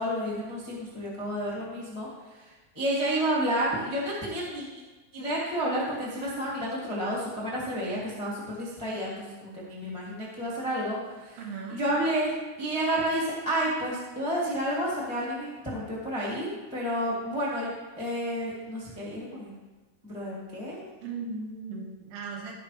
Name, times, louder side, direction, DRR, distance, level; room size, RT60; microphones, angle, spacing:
voice 1, 0.0-4.6 5.1-11.4 11.7-17.7 18.0-19.5 20.0-20.8, right 1 dB, 20° left, -7 dB, 0.7 m, -30 dB
voice 2, 11.4-11.8 21.0-22.6, right 4 dB, 85° right, 0 dB, 3.7 m, -37 dB
17.0 x 5.7 x 3.4 m, 1.2 s
omnidirectional pair, 5.2 m